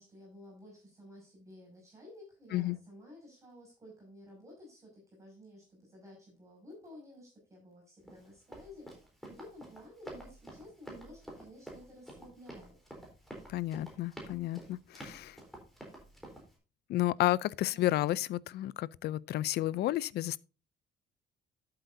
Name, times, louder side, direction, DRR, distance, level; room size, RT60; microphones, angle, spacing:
voice 1, 0.0-9.0 9.3-12.8 17.7-17.9, left 1 dB, 15° right, 5.8 m, -53 dB
Run, 8.1-16.5, right 1 dB, ahead, 3.6 m, -49 dB
voice 2, 13.5-15.4 16.9-20.4, left 15 dB, 60° left, 0.4 m, -31 dB
12.5 x 7.8 x 2.6 m
cardioid pair, 160°, 19 cm